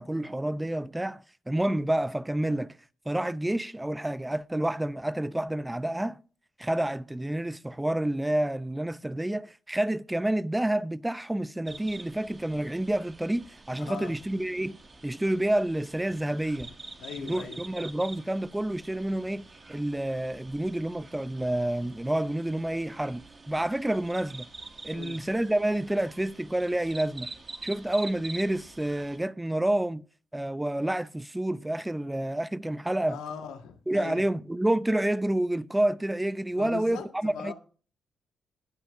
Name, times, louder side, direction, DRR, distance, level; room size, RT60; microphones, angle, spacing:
voice 1, 0.0-2.8 3.1-6.2 6.6-14.8 15.0-16.7 17.2-24.5 24.8-27.3 27.6-30.0 30.3-33.2 33.9-37.5, right 1 dB, 10° right, 0.6 m, -29 dB
sound 1, 11.7-29.2, right 3 dB, 35° right, 2.1 m, -47 dB
voice 2, 13.8-14.2 17.0-17.6 24.9-25.2 33.1-34.2 36.5-37.5, left 7 dB, 80° left, 1.6 m, -40 dB
20.0 x 7.9 x 2.6 m
hypercardioid pair, 45°, 0 cm